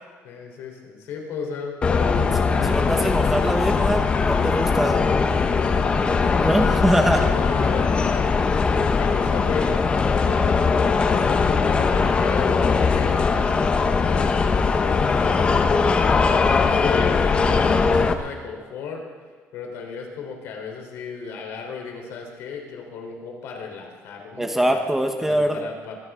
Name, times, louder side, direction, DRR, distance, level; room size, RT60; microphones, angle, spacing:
voice 1, 0.2-3.0 5.5-5.9 6.7-9.8 10.1-19.0 19.5-24.8 25.2-26.0, left 5 dB, 70° left, 2 dB, 3.5 m, -35 dB
sound 1, 1.8-18.1, left 5 dB, 25° left, 0.8 m, -20 dB
voice 2, 2.6-5.0 6.4-7.3 24.4-25.6, right 1 dB, 5° right, 5 dB, 1.0 m, -23 dB
23.5 x 16.0 x 3.7 m, 1.5 s
cardioid pair, 170°, 5 cm